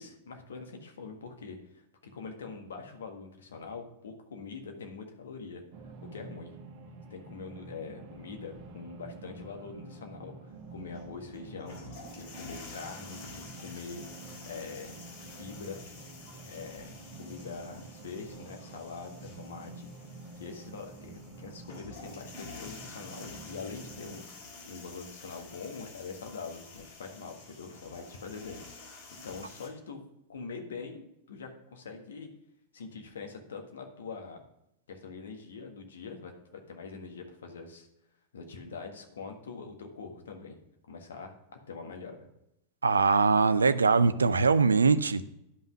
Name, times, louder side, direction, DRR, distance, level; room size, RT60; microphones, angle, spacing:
voice 1, 0.0-1.8 2.1-5.6 6.0-6.6 7.1-11.8 12.2-14.0 14.4-14.9 15.4-15.8 16.5-19.9 20.4-24.2 24.6-28.6 29.2-30.0 30.3-32.3 32.7-34.4 34.9-37.9 38.3-40.6 40.9-42.3, left 4 dB, 65° left, 4 dB, 1.5 m, -43 dB
sound 1, 5.7-24.2, right 3 dB, 45° right, 1.4 m, -48 dB
sound 2, 10.5-29.7, left 3 dB, 50° left, 3.1 m, -49 dB
voice 2, 42.8-45.2, right 4 dB, 75° right, 14 dB, 0.5 m, -22 dB
10.5 x 5.6 x 6.2 m, 0.82 s
figure-of-eight pair, 90°, 0 cm